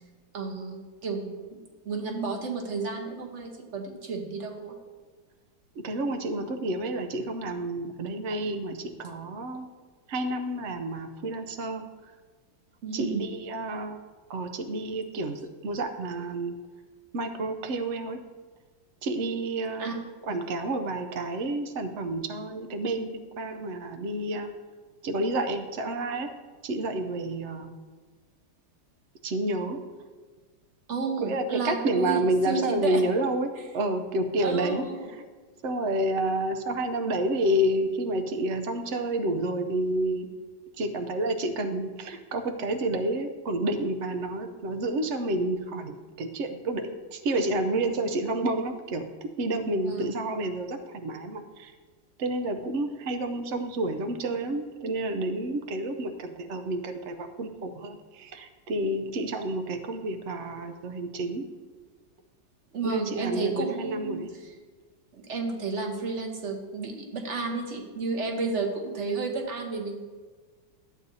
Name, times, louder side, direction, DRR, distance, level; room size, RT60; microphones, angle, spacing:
voice 1, 0.3-4.8 12.8-13.3 19.8-19.9 20.3-20.4 30.9-33.0 34.4-35.1 49.8-50.1 62.7-64.2 65.1-69.9, right 4 dB, 45° right, 2 dB, 1.2 m, -32 dB
voice 2, 5.8-9.7 10.1-11.8 12.9-14.0 14.3-16.5 17.1-18.2 19.0-24.5 25.0-26.3 26.6-27.7 29.2-29.8 31.2-35.2 35.6-40.3 40.8-51.7 52.2-61.4 62.8-64.3, right 1 dB, 90° right, 7 dB, 0.6 m, -29 dB
12.5 x 8.2 x 2.7 m, 1.4 s
omnidirectional pair, 2.0 m